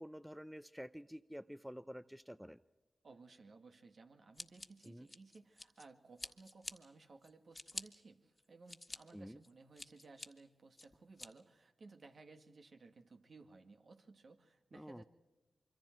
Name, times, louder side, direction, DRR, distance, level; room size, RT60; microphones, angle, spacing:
voice 1, 0.0-2.6 4.8-5.1 9.1-9.4 14.7-15.0, equal, ahead, 14 dB, 0.6 m, -49 dB
voice 2, 3.0-15.0, right 3 dB, 65° right, 5 dB, 2.1 m, -59 dB
Scissors, 4.4-5.9 6.2-6.7 7.2-7.8 8.4-9.0 9.4-10.3 10.8-11.3, left 2 dB, 30° left, 1.7 m, -48 dB
26.0 x 24.0 x 4.6 m, 1.2 s
cardioid pair, 45°, 0 cm